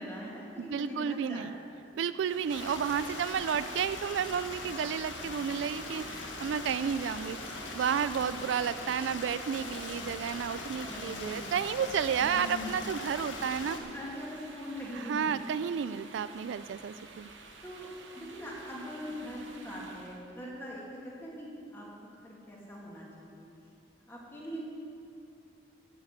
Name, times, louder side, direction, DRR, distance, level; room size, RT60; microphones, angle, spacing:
voice 1, 0.0-1.6 2.0-2.1 10.8-11.7 12.2-12.8 13.6-16.0 17.6-17.9 18.1-23.5 24.1-24.6, equal, 15° left, -5 dB, 2.2 m, -42 dB
voice 2, 0.6-1.6 1.9-7.4 7.7-13.8 15.0-17.3, right 7 dB, 70° right, 14 dB, 0.3 m, -32 dB
sound 1, 2.2-20.2, right 3 dB, 85° right, 1.1 m, -52 dB
Stream, 2.5-13.8, left 3 dB, 85° left, 1.2 m, -41 dB
11.5 x 6.1 x 8.2 m, 2.6 s
head